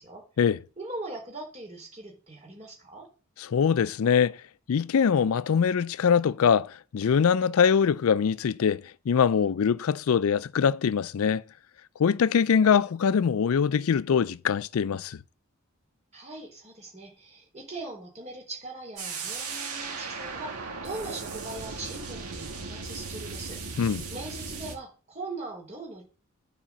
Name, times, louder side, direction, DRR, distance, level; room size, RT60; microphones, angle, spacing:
voice 1, 0.8-3.1 16.1-26.0, right 2 dB, 30° right, 4.2 m, -41 dB
voice 2, 3.4-4.4 4.7-11.4 12.0-15.2 23.8-24.0, left 7 dB, 70° left, 0.4 m, -23 dB
sound 1, 19.0-24.7, right 4 dB, 85° right, 2.3 m, -37 dB
10.0 x 4.9 x 7.7 m
head